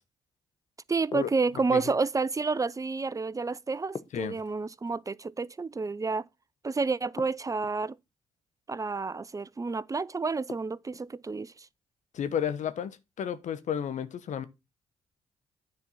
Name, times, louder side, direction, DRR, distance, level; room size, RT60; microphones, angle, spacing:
voice 1, 0.9-6.3 6.6-8.0 8.7-11.7, right 4 dB, 25° right, 0.5 m, -30 dB
sound 1, 1.1-1.9 3.9-5.0 7.2-7.9 10.5-11.1, left 4 dB, 35° left, 0.9 m, -44 dB
voice 2, 12.1-14.5, left 8 dB, 60° left, 1.0 m, -32 dB
9.7 x 4.4 x 5.5 m
hypercardioid pair, 40°, 14 cm